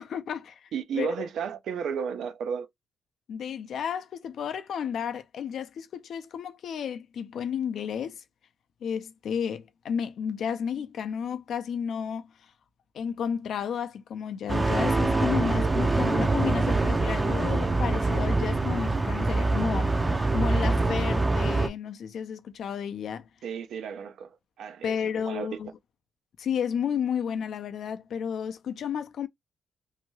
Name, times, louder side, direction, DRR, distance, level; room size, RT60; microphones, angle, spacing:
voice 1, 0.0-0.7 0.9-1.3 3.3-8.2 8.8-12.2 12.9-20.0 20.3-23.3 24.8-25.7 26.4-29.3, left 7 dB, 75° left, 0.4 m, -32 dB
voice 2, 0.7-2.7 23.4-25.0 25.3-25.6, right 7 dB, 80° right, 0.5 m, -33 dB
sound 1, 14.5-21.7, right 2 dB, 20° right, 0.4 m, -24 dB
2.7 x 2.3 x 2.9 m
cardioid pair, 95°, 0 cm